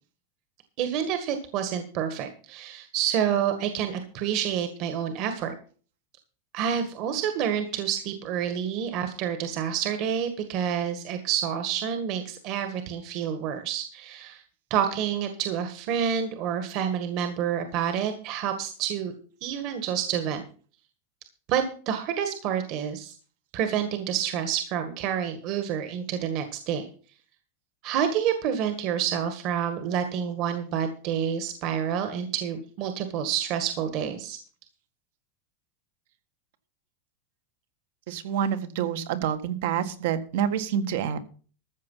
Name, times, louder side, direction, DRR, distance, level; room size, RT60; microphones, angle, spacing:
voice 1, 0.8-5.5 6.5-14.4 14.7-19.1 19.4-20.4 21.5-23.1 23.5-26.9 27.8-34.4, right 8 dB, 45° right, 8 dB, 1.8 m, -28 dB
voice 2, 38.1-41.2, right 8 dB, 65° right, 11 dB, 1.7 m, -27 dB
14.0 x 7.2 x 5.7 m, 0.40 s
supercardioid pair, 145°, 0 cm